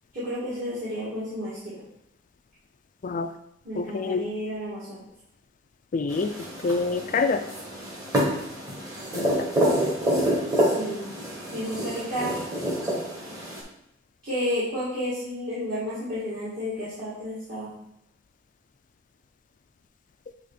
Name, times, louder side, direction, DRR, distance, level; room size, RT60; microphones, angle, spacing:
voice 1, 0.1-1.8 3.6-5.0 10.5-11.1 11.5-12.4 14.2-17.7, equal, 45° right, -14 dB, 2.3 m, -31 dB
voice 2, 3.8-4.3 5.9-6.3 6.6-7.4 9.1-9.5, left 4 dB, 40° left, 9 dB, 0.4 m, -26 dB
sound 1, 6.1-13.6, equal, 20° right, 1.3 m, -27 dB
7.6 x 3.1 x 4.1 m, 0.81 s
head